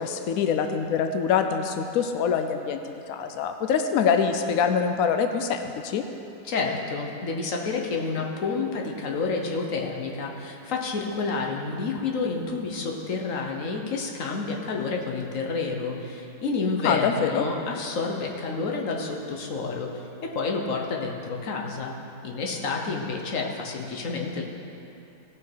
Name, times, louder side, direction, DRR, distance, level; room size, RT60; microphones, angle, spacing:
voice 1, 0.0-6.0 16.8-17.4, left 6 dB, 90° left, 6 dB, 0.7 m, -25 dB
voice 2, 6.4-21.9 22.2-24.4, left 4 dB, 50° left, 0 dB, 1.3 m, -29 dB
17.0 x 6.3 x 4.6 m, 2.8 s
omnidirectional pair, 2.1 m